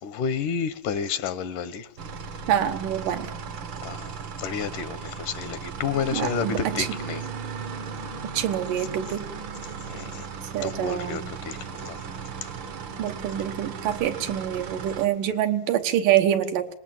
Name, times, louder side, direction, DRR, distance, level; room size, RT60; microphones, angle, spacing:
voice 1, 0.0-1.9 3.8-7.2 9.8-10.3 10.6-12.0, left 7 dB, 75° left, 13 dB, 2.6 m, -31 dB
sound 1, 2.0-15.0, right 6 dB, 60° right, 1.3 m, -36 dB
voice 2, 2.5-3.3 6.1-6.9 8.3-9.3 10.5-11.2 13.0-16.7, right 11 dB, 80° right, 6 dB, 3.0 m, -25 dB
25.5 x 19.5 x 7.8 m, 0.70 s
omnidirectional pair, 3.7 m